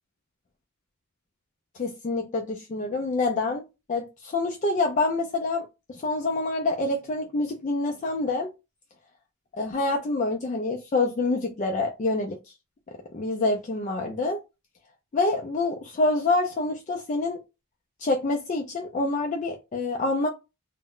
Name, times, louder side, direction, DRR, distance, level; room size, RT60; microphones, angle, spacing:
voice 1, 1.7-3.6 3.9-5.6 5.9-8.5 9.6-12.4 13.1-14.4 15.1-17.4 18.0-20.3, left 2 dB, 35° left, 0.3 m, -26 dB
2.0 x 2.0 x 3.6 m
head